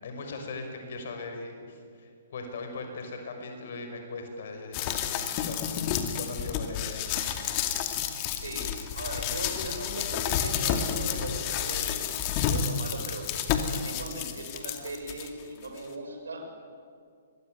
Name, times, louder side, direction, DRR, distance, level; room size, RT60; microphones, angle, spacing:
voice 1, 0.0-5.2 5.4-7.1, left 3 dB, 55° left, 5 dB, 6.0 m, -39 dB
sound 1, 4.7-15.3 15.8-15.9, left 8 dB, 35° left, 2.4 m, -30 dB
voice 2, 8.3-13.2 13.7-16.5, right 2 dB, 70° right, 3 dB, 6.6 m, -39 dB
25.0 x 22.0 x 9.5 m, 2.2 s
figure-of-eight pair, 120°, 0 cm